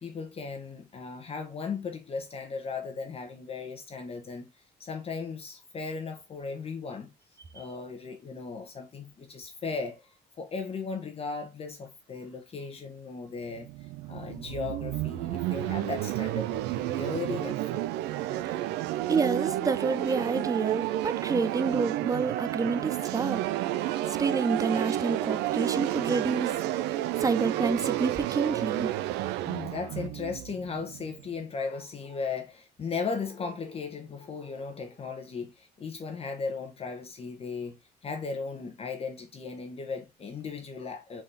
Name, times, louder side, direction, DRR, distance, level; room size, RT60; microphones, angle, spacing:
voice 1, 0.0-4.5 4.8-7.1 7.5-10.0 10.4-17.9 18.8-18.9 29.4-37.8 38.0-41.2, left 4 dB, 35° left, 1.0 m, -36 dB
sound 1, 13.5-31.3, right 14 dB, 85° right, 0.4 m, -31 dB
voice 2, 19.1-23.4 24.1-26.5 27.2-28.9, right 4 dB, 20° right, 0.4 m, -28 dB
4.2 x 3.7 x 3.3 m
cardioid pair, 110°, 17 cm